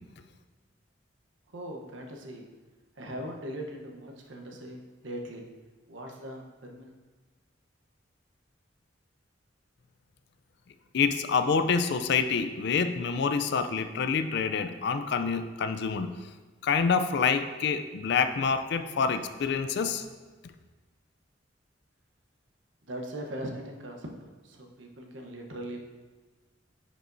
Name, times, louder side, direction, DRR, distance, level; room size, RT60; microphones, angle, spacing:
voice 1, 1.5-2.4 3.0-5.5 5.9-6.9 22.9-25.8, right 1 dB, 90° right, 1 dB, 1.0 m, -40 dB
voice 2, 10.9-16.1 16.6-20.0, left 5 dB, 60° left, 10 dB, 0.4 m, -27 dB
9.8 x 5.1 x 2.6 m, 1.3 s
head